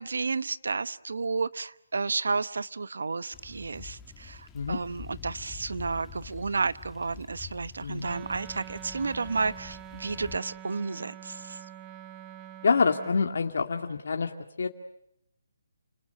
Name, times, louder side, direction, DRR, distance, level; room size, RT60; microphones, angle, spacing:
voice 1, 0.0-11.6, right 4 dB, 80° right, 17 dB, 1.0 m, -32 dB
sound 1, 3.3-10.4, left 7 dB, 10° left, 1.8 m, -47 dB
voice 2, 7.8-8.1 12.6-14.3 14.6-14.7, left 5 dB, 65° left, 4 dB, 2.1 m, -26 dB
Wind instrument woodwind instrument, 8.0-13.2, right 11 dB, 15° right, 1.1 m, -45 dB
30.0 x 19.5 x 9.5 m, 0.79 s
hypercardioid pair, 160°, 0 cm